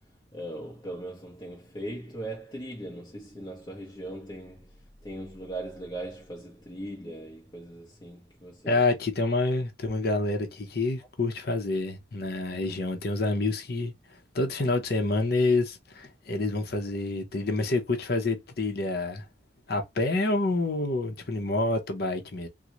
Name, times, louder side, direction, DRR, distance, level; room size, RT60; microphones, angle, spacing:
voice 1, 0.3-8.8, right 1 dB, 25° left, 0.8 m, -39 dB
voice 2, 8.7-19.3 19.7-22.5, left 2 dB, 55° left, 0.7 m, -28 dB
3.8 x 2.1 x 2.9 m
head